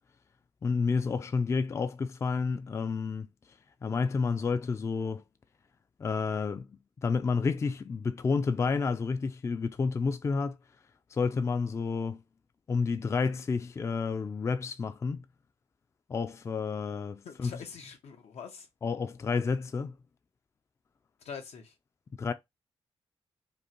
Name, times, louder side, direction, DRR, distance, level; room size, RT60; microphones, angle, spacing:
voice 1, 0.6-3.3 3.8-5.2 6.0-10.6 11.1-12.2 12.7-15.2 16.1-17.5 18.8-20.0 22.2-22.3, left 5 dB, 25° left, 0.3 m, -30 dB
voice 2, 17.2-18.7 21.2-21.7, left 6 dB, 90° left, 1.0 m, -44 dB
5.2 x 2.2 x 2.9 m
wide cardioid pair, 140°, 11 cm